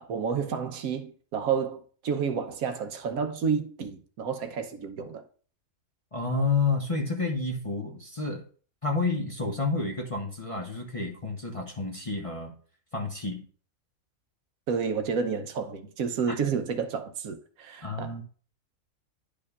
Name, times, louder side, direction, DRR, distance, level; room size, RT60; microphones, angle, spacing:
voice 1, 0.0-5.2 14.7-18.1, right 6 dB, 85° right, 1.2 m, -30 dB
voice 2, 6.1-8.4 8.8-12.5 12.9-13.5 16.3-16.4 17.8-18.2, left 3 dB, 30° left, 0.7 m, -30 dB
10.5 x 5.0 x 2.4 m
omnidirectional pair, 1.5 m